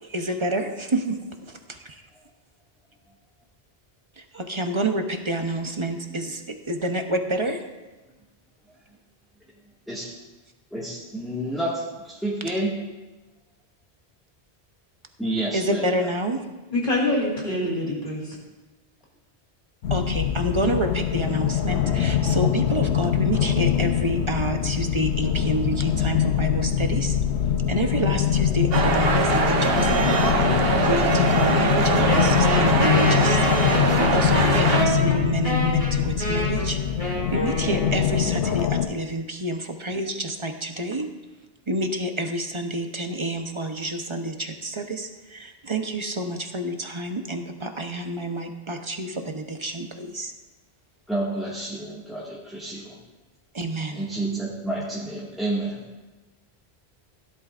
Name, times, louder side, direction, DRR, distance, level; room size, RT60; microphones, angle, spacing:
voice 1, 0.0-2.0 4.2-7.6 15.5-16.5 19.9-27.2 27.7-30.3 30.8-41.1 41.7-50.3 53.5-54.1, right 1 dB, 30° right, 5 dB, 0.8 m, -28 dB
voice 2, 9.9-10.2 10.7-12.7 15.2-15.9 51.1-52.9 53.9-55.8, right 1 dB, ahead, -7 dB, 1.8 m, -29 dB
voice 3, 16.7-18.3, left 1 dB, 50° left, -3 dB, 3.1 m, -25 dB
sound 1, 19.8-38.9, left 9 dB, 90° left, 1.0 m, -23 dB
sound 2, 28.7-34.8, right 4 dB, 65° right, 1.2 m, -22 dB
Wind instrument woodwind instrument, 32.1-38.4, equal, 35° left, 4.3 m, -28 dB
16.5 x 11.0 x 2.5 m, 1.2 s
omnidirectional pair, 1.1 m